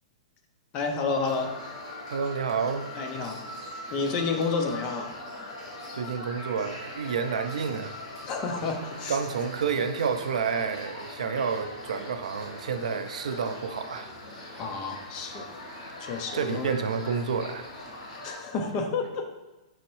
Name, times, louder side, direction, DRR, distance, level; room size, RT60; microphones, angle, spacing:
voice 1, 0.7-1.5 3.0-3.5 3.9-5.1 8.3-9.2 14.6-15.5 16.0-16.7 18.2-19.3, left 4 dB, 20° left, 4 dB, 0.3 m, -30 dB
sound 1, 1.3-18.3, left 1 dB, 50° left, 1.4 m, -41 dB
voice 2, 2.1-2.8 5.9-8.0 9.1-14.1 14.5-14.6 16.3-17.7, right 6 dB, 80° right, 9 dB, 0.4 m, -29 dB
5.4 x 3.0 x 3.0 m, 1.1 s
hypercardioid pair, 175°, 4 cm